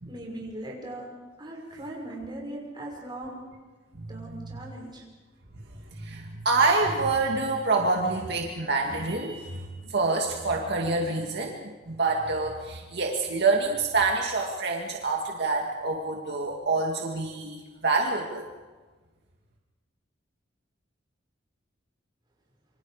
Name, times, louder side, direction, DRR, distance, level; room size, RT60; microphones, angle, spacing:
voice 1, 0.1-3.4 4.1-5.0, right 1 dB, 25° right, -1 dB, 5.8 m, -39 dB
voice 2, 5.9-18.5, right 3 dB, 60° right, 0 dB, 2.2 m, -27 dB
27.0 x 25.0 x 5.0 m, 1.3 s
head